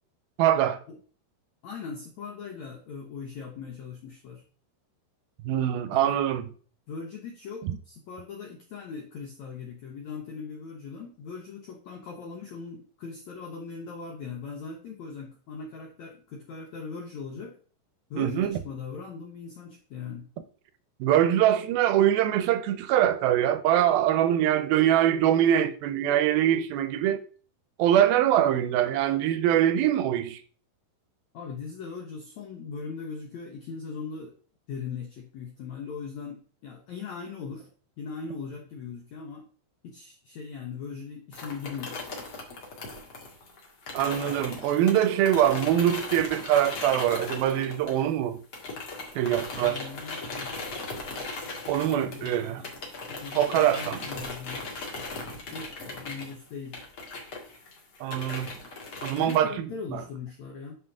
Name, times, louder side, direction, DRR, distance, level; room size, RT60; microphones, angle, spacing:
voice 1, 0.4-0.8 5.4-6.5 7.6-7.8 18.2-18.6 21.0-27.2 27.8-30.4 43.9-48.4 49.2-49.9 51.7-52.6 53.4-54.1 58.0-58.5 59.0-59.6 59.9-60.0, right 11 dB, 80° right, 2.2 m, -23 dB
voice 2, 1.6-4.4 5.9-6.2 6.9-17.6 18.1-20.3 31.3-34.3 34.7-37.7 38.0-39.4 39.8-42.0 49.6-50.5 51.9-52.7 53.1-54.6 55.5-56.8 59.2-60.8, left 5 dB, 90° left, 1.6 m, -39 dB
sound 1, 41.3-48.2 48.5-59.4, left 3 dB, 45° left, 1.8 m, -38 dB
9.4 x 5.7 x 3.6 m
omnidirectional pair, 5.0 m